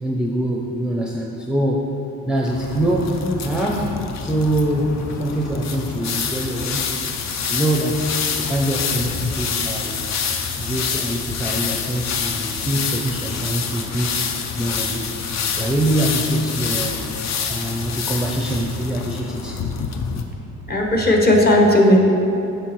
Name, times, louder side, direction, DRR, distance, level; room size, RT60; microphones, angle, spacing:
voice 1, 0.0-2.0 2.3-7.0 7.5-10.0 10.6-14.2 14.6-15.2 15.5-17.1 17.5-19.6, right 1 dB, 5° right, -1 dB, 0.5 m, -24 dB
sound 1, 2.4-20.2, left 6 dB, 60° left, 0.6 m, -27 dB
voice 2, 20.7-22.0, left 1 dB, 30° left, 0 dB, 1.1 m, -15 dB
8.3 x 5.4 x 3.1 m, 2.8 s
cardioid pair, 90°, 30 cm